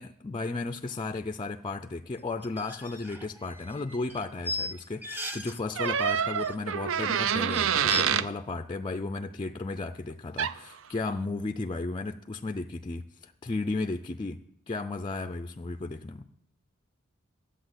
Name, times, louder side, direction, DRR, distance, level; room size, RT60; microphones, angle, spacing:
voice 1, 0.0-16.3, left 3 dB, 25° left, 8 dB, 0.4 m, -34 dB
sound 1, 2.4-5.6 5.8-6.7 7.0-7.1 7.4-8.0, left 1 dB, 10° right, 0.9 m, -37 dB
sound 2, 5.8-8.3 10.4-10.6, right 8 dB, 65° right, 0.5 m, -27 dB
12.0 x 8.2 x 8.0 m, 0.76 s
head